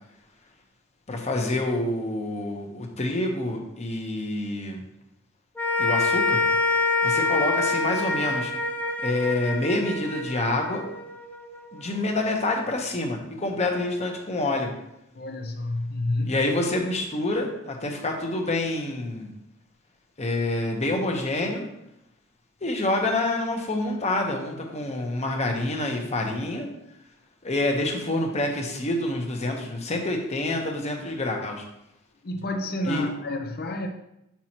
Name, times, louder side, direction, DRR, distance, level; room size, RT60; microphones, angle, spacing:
voice 1, 1.1-4.8 5.8-6.4 7.0-8.5 9.0-10.8 11.7-14.7 16.3-19.3 20.2-21.6 22.6-26.7 27.4-31.6 32.8-33.1, left 2 dB, 30° left, 2 dB, 1.0 m, -27 dB
sound 1, 5.6-12.0, left 3 dB, 10° left, 0.5 m, -26 dB
voice 2, 15.1-16.4 32.2-33.9, left 2 dB, 50° left, 4 dB, 0.7 m, -29 dB
7.6 x 5.8 x 3.0 m, 0.84 s
head